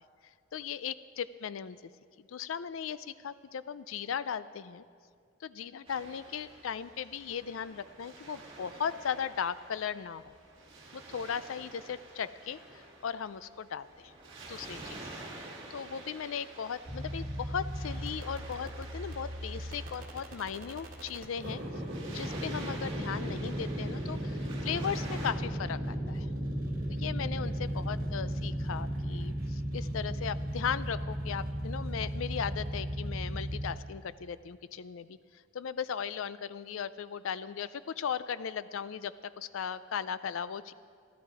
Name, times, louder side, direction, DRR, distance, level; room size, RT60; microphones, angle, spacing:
voice 1, 0.5-1.8 2.3-4.8 5.4-10.2 10.9-14.1 14.5-15.2 15.7-21.6 22.1-26.3 26.9-35.2 35.5-40.7, left 7 dB, 75° left, 16 dB, 0.4 m, -37 dB
Waves surf, 5.9-25.3, right 2 dB, 25° right, 2.0 m, -49 dB
sound 1, 16.8-33.7, equal, 45° right, 1.8 m, -36 dB
13.5 x 13.0 x 4.8 m, 2.1 s
head